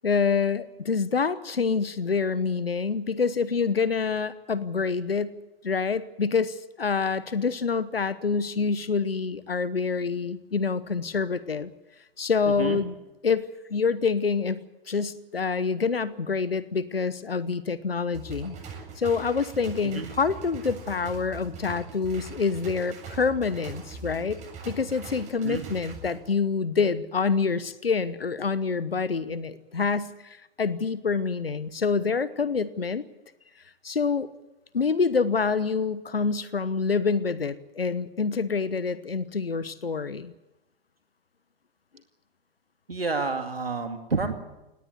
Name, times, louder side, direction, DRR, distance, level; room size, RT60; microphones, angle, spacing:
voice 1, 0.0-5.3 5.6-11.7 12.2-12.9 13.2-14.6 14.9-18.6 19.0-24.4 24.7-33.0 33.8-34.3 34.7-40.3, left 5 dB, 80° left, 17 dB, 1.0 m, -26 dB
voice 2, 12.5-12.8 19.8-20.1 25.4-25.6 42.9-44.3, right 4 dB, 80° right, 6 dB, 2.3 m, -29 dB
sound 1, 18.1-26.1, right 4 dB, 25° right, 7.9 m, -41 dB
19.0 x 18.5 x 9.5 m, 0.97 s
figure-of-eight pair, 105°, 29 cm